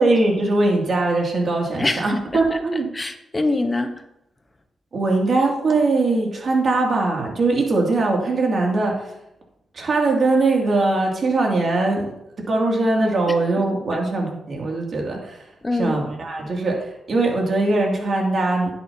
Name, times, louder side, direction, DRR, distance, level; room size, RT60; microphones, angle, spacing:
voice 1, 0.0-2.9 4.9-9.0 9.7-12.1 12.5-15.4 15.8-18.7, right 2 dB, 50° right, -1 dB, 2.6 m, -21 dB
voice 2, 1.7-2.6 2.9-4.0 13.3-13.4 13.9-14.0 15.6-16.1, left 2 dB, 20° left, 6 dB, 1.1 m, -25 dB
10.5 x 8.8 x 2.9 m, 0.84 s
cardioid pair, 85°, 0 cm